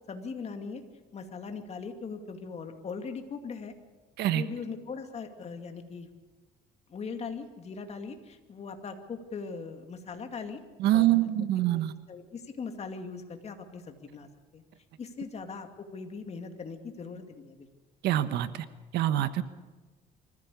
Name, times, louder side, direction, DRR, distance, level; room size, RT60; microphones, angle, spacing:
voice 1, 0.1-0.8 1.1-3.7 4.3-6.1 6.9-10.6 10.9-11.2 11.6-11.8 12.1-14.6 15.0-17.7, left 5 dB, 40° left, 6 dB, 2.4 m, -40 dB
voice 2, 10.8-11.9 18.0-18.6 18.9-19.4, right 13 dB, 80° right, 12 dB, 1.3 m, -25 dB
24.0 x 15.0 x 8.4 m, 1.2 s
cardioid pair, 110°, 17 cm